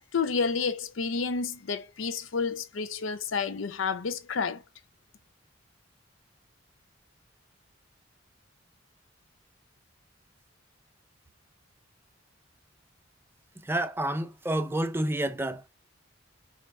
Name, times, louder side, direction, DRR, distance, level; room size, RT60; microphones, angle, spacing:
voice 1, 0.0-4.6, left 5 dB, 85° left, 0.6 m, -30 dB
voice 2, 13.7-15.7, right 1 dB, 10° right, 0.5 m, -29 dB
4.4 x 3.3 x 2.6 m
head